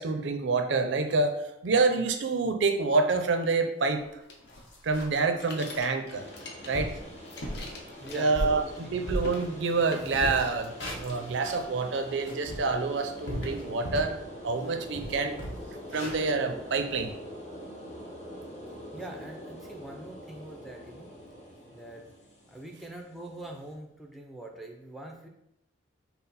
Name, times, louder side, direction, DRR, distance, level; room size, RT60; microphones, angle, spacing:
voice 1, 0.0-1.4 1.6-4.0 4.8-6.2 6.7-6.9 8.1-15.4 15.9-17.1, right 4 dB, 70° right, 7 dB, 0.4 m, -27 dB
sound 1, 4.0-4.1 4.5-5.3 5.7-5.9 6.4-6.5 6.7-7.0 7.4-7.7 8.1-9.8 10.1-11.7 12.1-14.2 14.6-14.7 14.9-17.1, equal, 80° left, 1.0 m, -36 dB
sound 2, 4.3-6.9 7.2-8.9 9.1-9.5 9.9-10.8 11.1-11.9, left 2 dB, 60° left, 0.7 m, -45 dB
sound 3, 6.1-23.7, equal, 35° left, 1.0 m, -45 dB
voice 2, 8.0-8.7 9.0-9.1 18.9-21.1 21.7-22.0 22.5-25.3, right 1 dB, ahead, 1 dB, 0.4 m, -43 dB
5.7 x 2.0 x 4.0 m, 0.81 s
head